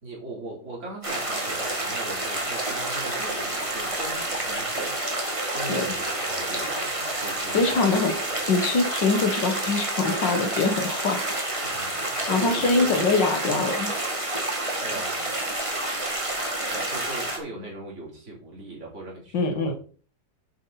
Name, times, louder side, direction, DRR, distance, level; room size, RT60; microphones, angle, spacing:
voice 1, 0.0-8.4 11.5-13.0 14.8-15.4 16.7-19.7, right 2 dB, 40° right, -3 dB, 4.0 m, -39 dB
sound 1, 1.0-17.4, right 1 dB, 20° right, 2.1 m, -29 dB
voice 2, 7.5-8.1 8.5-11.2 12.3-13.9 19.3-19.7, left 3 dB, 90° left, 5 dB, 2.2 m, -23 dB
10.0 x 7.8 x 4.1 m, 0.41 s
omnidirectional pair, 1.9 m